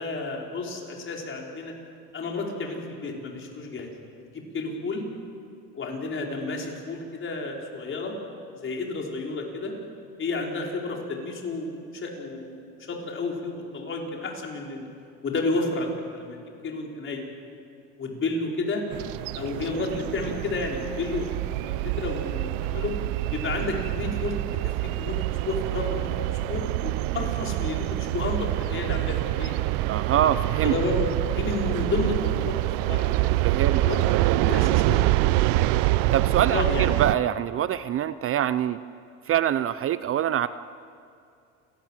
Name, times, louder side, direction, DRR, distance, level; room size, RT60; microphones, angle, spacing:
voice 1, 0.0-1.7 2.1-3.9 4.3-5.1 5.7-8.1 8.6-9.7 10.2-14.9 15.2-16.4 16.6-17.2 18.0-18.8 19.3-21.2 21.6-22.9 23.3-29.6 30.6-31.1 31.3-33.5 33.8-35.4 36.5-36.9, left 3 dB, 35° left, 0 dB, 5.2 m, -31 dB
sound 1, 18.9-37.1, right 17 dB, 70° right, 0.8 m, -26 dB
voice 2, 29.9-30.7 33.4-33.8 34.3-34.5 36.1-38.8 39.3-40.5, right 10 dB, 40° right, 14 dB, 0.7 m, -25 dB
29.0 x 18.0 x 7.6 m, 2.4 s
supercardioid pair, 100°, 35 cm